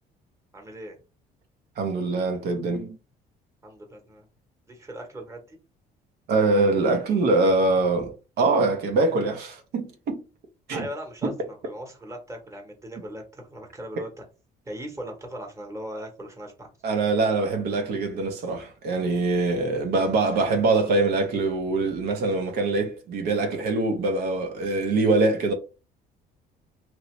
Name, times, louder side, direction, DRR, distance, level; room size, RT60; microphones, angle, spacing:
voice 1, 0.5-1.0 3.6-4.3 4.7-5.6 10.7-14.2 14.6-16.7, equal, 15° right, 1.1 m, -39 dB
voice 2, 1.8-3.0 6.3-10.2 10.7-10.9 11.2-11.3 14.0-14.1 16.8-25.5, right 3 dB, 70° right, 0.8 m, -23 dB
2.9 x 2.7 x 3.1 m
cardioid pair, 110°, 17 cm